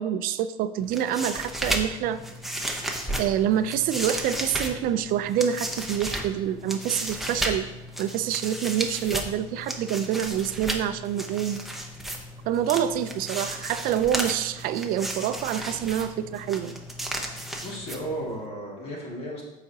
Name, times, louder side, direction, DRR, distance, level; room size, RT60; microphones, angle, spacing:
voice 1, 0.0-2.2 3.2-7.7 8.0-11.7 12.5-16.8, right 10 dB, 60° right, 11 dB, 0.5 m, -27 dB
sound 1, 0.8-18.4, right 1 dB, ahead, 0.7 m, -34 dB
voice 2, 17.6-19.4, right 1 dB, 35° left, -4 dB, 2.1 m, -34 dB
13.0 x 4.9 x 2.8 m, 1.0 s
cardioid pair, 160°, 17 cm